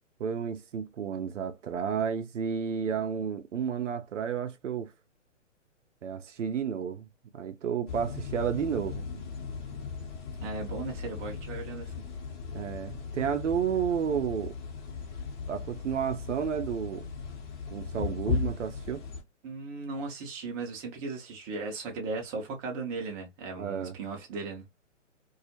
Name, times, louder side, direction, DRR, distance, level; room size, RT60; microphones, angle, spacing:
voice 1, 0.2-4.9 6.0-7.1 7.3-9.2 12.5-14.5 15.5-17.1 17.7-19.0 23.6-24.0, right 7 dB, 75° right, 0.5 m, -31 dB
sound 1, 7.9-19.2, left 5 dB, 40° left, 0.8 m, -37 dB
voice 2, 10.4-12.1 19.4-24.6, right 3 dB, 20° right, 0.5 m, -37 dB
2.3 x 2.0 x 2.7 m
figure-of-eight pair, 120°, 37 cm